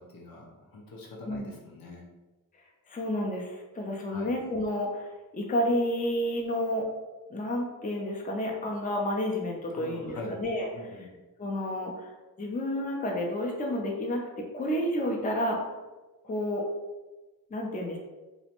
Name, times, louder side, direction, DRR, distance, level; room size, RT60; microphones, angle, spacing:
voice 1, 0.0-2.1 4.1-4.3 9.7-10.4 10.7-11.1, left 2 dB, 80° left, -2 dB, 0.6 m, -43 dB
voice 2, 2.9-6.9 7.3-10.7 11.4-15.6 16.2-16.6 17.5-18.0, left 1 dB, 25° left, 0 dB, 0.4 m, -30 dB
2.5 x 2.0 x 2.8 m, 1.1 s
wide cardioid pair, 85°, 35 cm